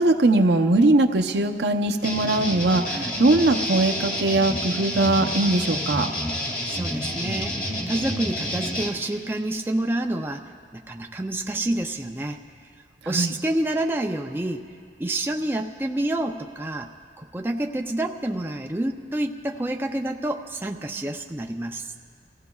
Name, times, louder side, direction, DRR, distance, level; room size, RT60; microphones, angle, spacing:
voice 1, 0.0-6.1 13.1-13.3, right 2 dB, 75° right, 5 dB, 0.7 m, -20 dB
sound 1, 2.0-8.9, equal, 30° left, 2.2 m, -29 dB
voice 2, 6.7-12.4 13.1-14.7 15.0-16.9 17.2-21.9, right 1 dB, 10° right, 1 dB, 0.4 m, -28 dB
29.5 x 15.5 x 2.3 m, 2.2 s
head